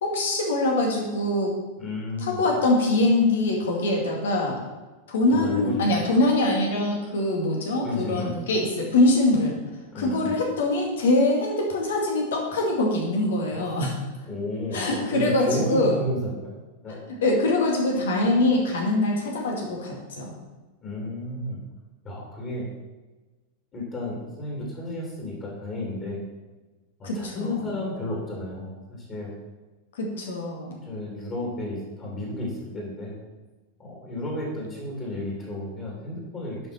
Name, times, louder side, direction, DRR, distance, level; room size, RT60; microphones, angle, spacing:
voice 1, 0.0-1.5 2.2-4.6 5.1-9.6 10.0-13.9 14.7-16.0 17.2-20.3 27.0-27.7 29.9-30.8, left 2 dB, 60° left, 0 dB, 2.2 m, -23 dB
voice 2, 1.8-2.4 5.3-6.0 7.8-8.3 9.9-10.3 13.5-13.7 14.3-16.5 16.8-17.0 20.8-21.6 22.0-22.6 23.7-26.2 27.0-29.3 30.8-33.2 33.8-36.7, left 1 dB, 30° left, -3 dB, 2.9 m, -32 dB
11.0 x 5.5 x 4.4 m, 1.2 s
figure-of-eight pair, 90°, 0 cm